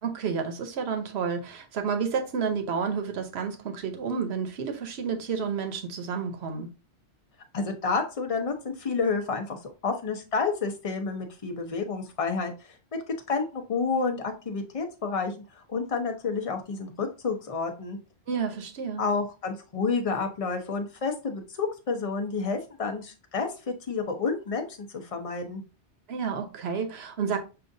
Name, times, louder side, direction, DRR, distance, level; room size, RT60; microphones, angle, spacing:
voice 1, 0.0-6.7 18.3-19.0 26.1-27.4, right 6 dB, 65° right, 1.0 m, -30 dB
voice 2, 7.5-12.8 13.3-18.0 19.0-25.6, left 4 dB, 35° left, 0.7 m, -30 dB
6.7 x 2.5 x 2.6 m
omnidirectional pair, 1.2 m